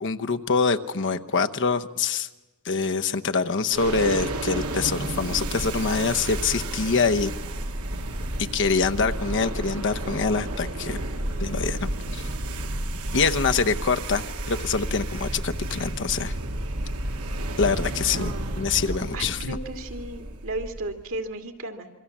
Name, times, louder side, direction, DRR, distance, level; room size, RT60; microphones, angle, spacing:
voice 1, 0.0-2.3 2.6-7.3 8.5-11.0 11.4-12.2 13.1-16.3 17.6-18.3 18.6-19.6, left 4 dB, 55° left, 8 dB, 0.9 m, -25 dB
sound 1, 3.7-21.1, right 1 dB, 85° right, 1.9 m, -31 dB
voice 2, 18.1-18.7 19.1-21.9, right 2 dB, 65° right, 5 dB, 2.5 m, -35 dB
27.5 x 24.0 x 7.3 m, 1.1 s
head